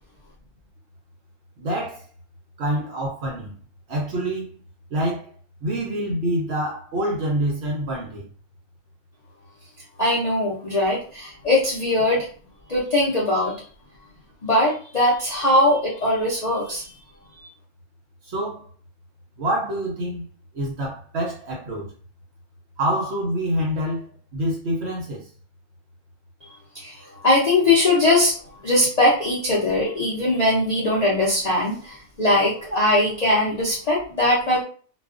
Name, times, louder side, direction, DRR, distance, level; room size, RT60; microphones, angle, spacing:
voice 1, 1.6-2.0 2.6-3.5 3.9-4.5 4.9-5.3 5.6-8.3 18.2-18.6 19.4-20.3 20.5-21.9 22.8-25.3, right 1 dB, 65° right, 0.7 m, -26 dB
voice 2, 10.0-12.3 12.7-13.5 14.4-16.9 26.7-28.3 28.6-34.6, left 1 dB, 55° left, 0.4 m, -20 dB
2.4 x 2.2 x 2.4 m
omnidirectional pair, 1.5 m